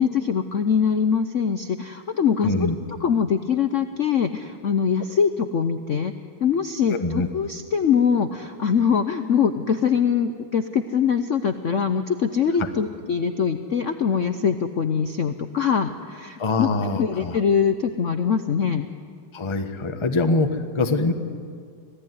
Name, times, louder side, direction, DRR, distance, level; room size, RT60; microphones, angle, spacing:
voice 1, 0.0-2.7 3.0-6.1 6.4-16.7 17.0-18.9, left 7 dB, 80° left, 8 dB, 0.6 m, -23 dB
voice 2, 2.4-2.7 6.9-7.3 16.4-17.4 19.3-20.5 20.7-21.1, left 2 dB, 20° left, 6 dB, 0.9 m, -23 dB
25.5 x 17.0 x 9.4 m, 2.1 s
omnidirectional pair, 2.4 m